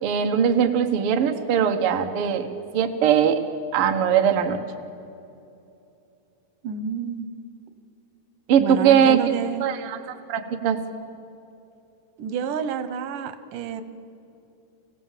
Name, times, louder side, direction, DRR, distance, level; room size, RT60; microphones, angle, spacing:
voice 1, 0.0-2.5 2.7-3.4 3.7-4.6 8.5-9.2 9.6-10.0 10.3-10.8, right 8 dB, 55° right, 5 dB, 1.8 m, -20 dB
voice 2, 6.6-7.3 8.6-9.7 12.2-13.8, right 6 dB, 90° right, 11 dB, 2.6 m, -29 dB
26.0 x 16.0 x 7.4 m, 2.7 s
omnidirectional pair, 3.6 m